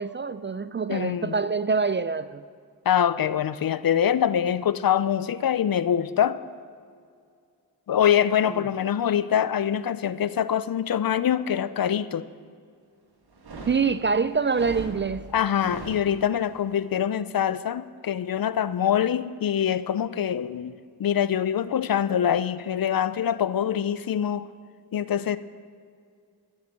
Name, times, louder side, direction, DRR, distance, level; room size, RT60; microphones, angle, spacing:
voice 1, 0.0-2.4 13.7-15.3, right 5 dB, 30° right, 15 dB, 0.4 m, -25 dB
voice 2, 0.9-1.3 2.9-6.4 7.9-12.3 15.3-24.5 24.9-25.4, left 9 dB, 60° left, 16 dB, 0.5 m, -24 dB
sound 1, 13.3-16.5, right 2 dB, 65° right, 1.9 m, -40 dB
13.0 x 7.4 x 7.4 m, 2.2 s
cardioid pair, 55°, 41 cm